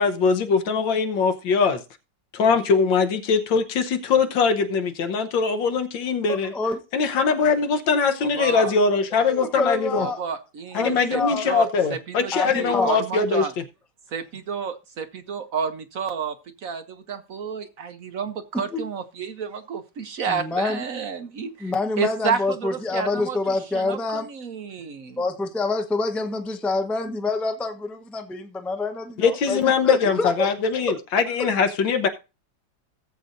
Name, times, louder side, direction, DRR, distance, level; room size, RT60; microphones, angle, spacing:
voice 1, 0.0-1.8 2.3-6.5 6.9-10.1 10.8-13.6 29.2-32.1, left 5 dB, 85° left, 1.8 m, -22 dB
voice 2, 6.3-6.8 9.3-10.2 10.7-11.5 12.3-13.0 18.7-18.9 20.3-20.8 21.6-24.3 25.2-29.6 29.8-30.5 30.9-31.0 31.4-31.5, left 3 dB, ahead, 0.5 m, -27 dB
voice 3, 8.4-8.7 10.0-13.5 14.1-16.4 16.6-25.2, right 6 dB, 55° right, 1.1 m, -30 dB
18.0 x 7.7 x 2.6 m
omnidirectional pair, 2.0 m